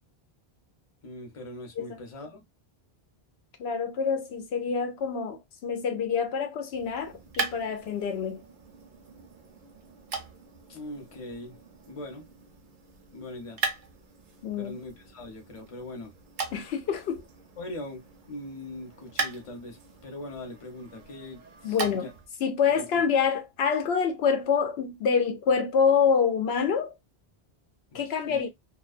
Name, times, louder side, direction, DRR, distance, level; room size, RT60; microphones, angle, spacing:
voice 1, 1.0-2.4 10.7-11.6 11.9-12.2 13.1-13.6 14.6-16.1 17.6-22.1 22.7-22.9 27.9-28.0 28.2-28.4, left 1 dB, 35° left, 0.8 m, -41 dB
voice 2, 3.6-8.4 14.4-14.7 16.5-17.2 21.6-22.1 22.4-26.9 27.9-28.5, left 6 dB, 80° left, 0.8 m, -26 dB
sound 1, 6.7-22.3, right 4 dB, 55° right, 0.7 m, -39 dB
2.3 x 2.3 x 2.3 m
omnidirectional pair, 1.0 m